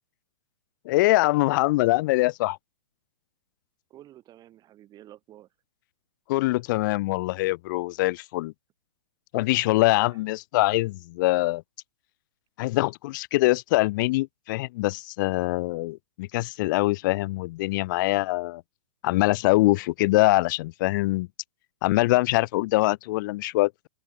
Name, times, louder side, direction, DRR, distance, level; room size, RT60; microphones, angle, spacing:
voice 1, 0.8-2.6 6.3-8.5 9.3-11.6 12.6-18.6 19.0-21.3 21.8-23.9, left 20 dB, 45° left, 0.9 m, -23 dB
voice 2, 3.9-5.5 9.5-10.2, right 13 dB, 25° right, 6.8 m, -51 dB
open air
figure-of-eight pair, 115°, 15 cm